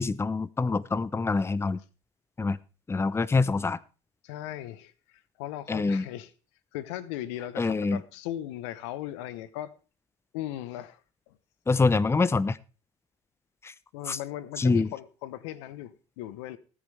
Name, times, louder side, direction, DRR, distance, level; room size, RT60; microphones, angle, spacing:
voice 1, 0.0-1.8 2.4-2.6 2.9-3.8 5.7-6.1 7.6-8.0 11.7-12.6 13.6-13.7 14.1-14.2 14.6-14.9, left 3 dB, 15° left, 0.7 m, -25 dB
voice 2, 4.2-6.3 6.7-9.7 10.3-11.0 11.3-11.4 13.9-16.6, left 13 dB, 80° left, 1.0 m, -38 dB
19.0 x 8.8 x 3.4 m
hypercardioid pair, 70°, 15 cm